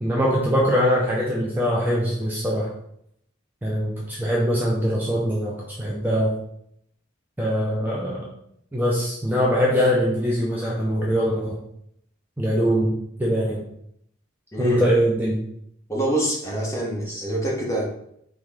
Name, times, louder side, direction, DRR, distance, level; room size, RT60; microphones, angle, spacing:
voice 1, 0.0-2.7 3.6-6.3 7.4-8.2 8.7-11.6 12.4-12.9 13.2-13.6 14.6-15.4 17.1-17.2, equal, 10° right, -4 dB, 0.6 m, -22 dB
voice 2, 14.5-14.9 15.9-17.8, right 1 dB, 15° left, -3 dB, 1.1 m, -25 dB
4.8 x 3.0 x 3.6 m, 0.72 s
head